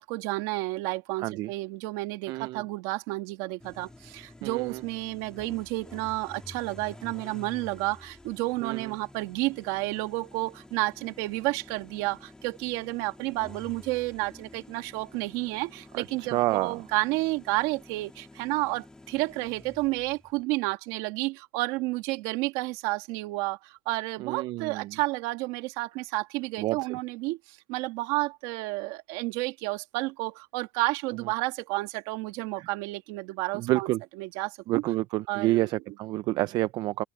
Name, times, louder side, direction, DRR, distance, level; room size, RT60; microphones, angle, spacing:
voice 1, 0.0-33.9 34.2-34.8 35.3-35.7 36.3-36.4, right 21 dB, 85° right, 2.1 m, -31 dB
voice 2, 1.2-1.5 2.3-2.6 4.4-4.8 8.6-8.9 15.9-16.8 24.2-25.0 26.6-27.0 32.6-32.7 33.5-34.0 34.7-37.0, right 17 dB, 70° right, 0.6 m, -29 dB
sound 1, 3.6-20.4, left 2 dB, 10° left, 3.0 m, -50 dB
open air
cardioid pair, 110°, 7 cm